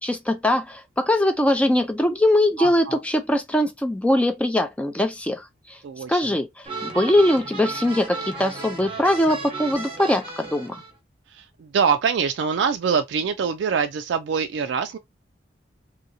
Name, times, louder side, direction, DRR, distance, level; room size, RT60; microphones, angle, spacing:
voice 1, 0.0-5.8 6.1-6.5 6.8-10.8, left 1 dB, 5° left, 0.4 m, -21 dB
voice 2, 2.6-3.0 5.8-6.3 11.3-15.0, right 6 dB, 80° right, 0.3 m, -24 dB
sound 1, 6.6-10.9, right 3 dB, 30° right, 0.8 m, -34 dB
2.7 x 2.7 x 2.6 m
head